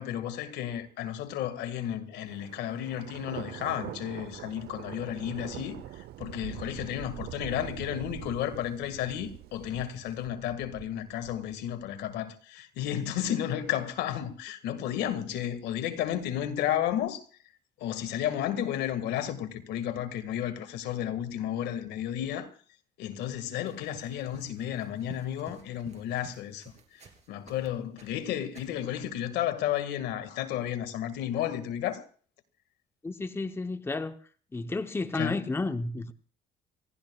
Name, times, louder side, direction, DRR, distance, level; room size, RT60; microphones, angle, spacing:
voice 1, 0.0-17.3 17.8-22.5 23.0-27.0 27.3-32.0 35.1-35.4, left 11 dB, 85° left, 1.9 m, -32 dB
Thunder, 2.3-12.1, right 13 dB, 75° right, 0.9 m, -44 dB
sound 1, 23.6-27.7 28.0-28.9, right 6 dB, 40° right, 3.2 m, -53 dB
voice 2, 33.0-34.2 34.5-36.1, left 3 dB, 15° left, 0.8 m, -32 dB
27.0 x 16.0 x 2.4 m
cardioid pair, 110°, 17 cm